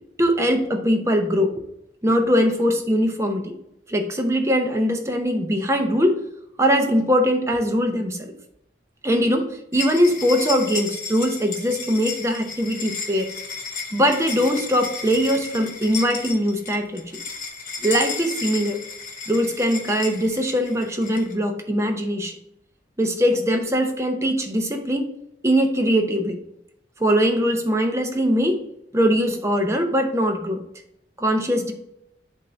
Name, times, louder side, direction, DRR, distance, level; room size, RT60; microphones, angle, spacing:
voice 1, 0.2-1.6 2.0-3.5 3.9-6.2 6.6-8.3 9.0-13.3 13.9-17.0 17.8-18.8 19.3-22.3 23.0-25.1 25.4-26.4 27.0-28.6 28.9-30.6 31.2-31.7, equal, 15° right, 4 dB, 0.7 m, -21 dB
sound 1, 9.7-21.3, left 4 dB, 45° left, 1.1 m, -33 dB
7.4 x 2.6 x 5.6 m, 0.80 s
head